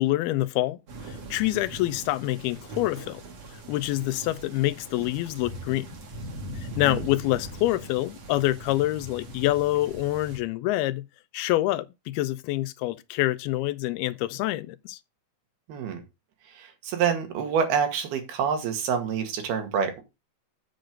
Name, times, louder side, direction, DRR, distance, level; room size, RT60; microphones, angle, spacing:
voice 1, 0.0-3.2 3.7-5.9 6.8-11.0 11.3-15.0, left 16 dB, 85° left, 2.6 m, -26 dB
sound 1, 0.9-10.4, right 1 dB, 45° right, 3.4 m, -41 dB
voice 2, 6.7-7.0 15.7-16.0 16.5-20.0, right 7 dB, 80° right, 3.9 m, -27 dB
8.0 x 7.7 x 5.1 m
omnidirectional pair, 4.4 m